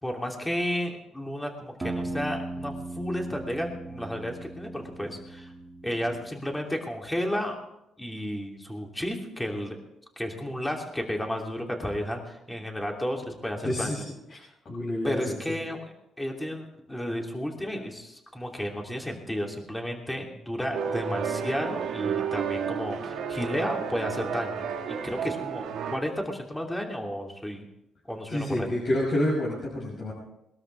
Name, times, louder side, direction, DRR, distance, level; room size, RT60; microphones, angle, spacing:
voice 1, 0.0-5.5 5.8-7.5 8.0-9.8 10.2-14.0 15.0-27.7 28.1-28.7, equal, 10° left, 1 dB, 3.0 m, -32 dB
sound 1, 1.8-6.5, right 2 dB, 20° right, 2.2 m, -38 dB
voice 2, 13.6-14.0 14.3-14.4 14.6-15.2 15.5-15.6 28.3-30.1, left 1 dB, 50° left, -6 dB, 6.2 m, -28 dB
sound 2, 20.7-26.0, right 7 dB, 75° right, 1.5 m, -31 dB
21.5 x 13.0 x 3.5 m, 0.84 s
cardioid pair, 90°, 0 cm